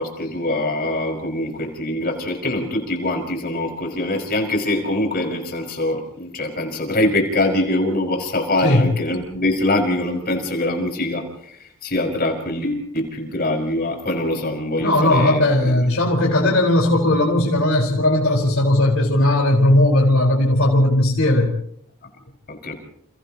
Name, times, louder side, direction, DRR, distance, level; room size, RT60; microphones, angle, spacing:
voice 1, 0.0-15.8 22.5-22.7, left 1 dB, 45° left, 3 dB, 5.5 m, -23 dB
voice 2, 14.8-21.5, left 1 dB, 70° left, -1 dB, 4.5 m, -17 dB
30.0 x 30.0 x 3.0 m, 0.67 s
head